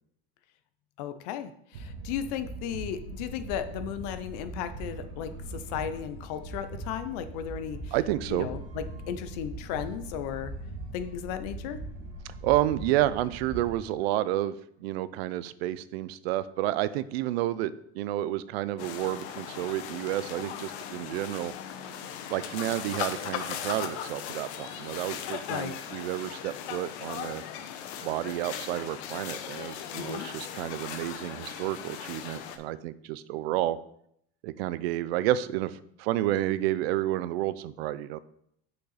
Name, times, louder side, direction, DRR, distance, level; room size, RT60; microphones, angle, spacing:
voice 1, 1.0-7.9 8.3-10.5 10.9-11.8 25.5-25.7 30.0-30.3, left 9 dB, 40° left, 11 dB, 0.4 m, -35 dB
sound 1, 1.7-13.7, right 2 dB, 85° right, 1.8 m, -41 dB
voice 2, 7.9-8.5 12.4-21.5 22.3-27.4 28.0-33.8 34.4-38.2, right 14 dB, 70° right, 16 dB, 0.5 m, -30 dB
sound 2, 18.8-32.6, left 9 dB, 90° left, 0.8 m, -38 dB
6.4 x 5.4 x 4.0 m, 0.72 s
supercardioid pair, 180°, 32 cm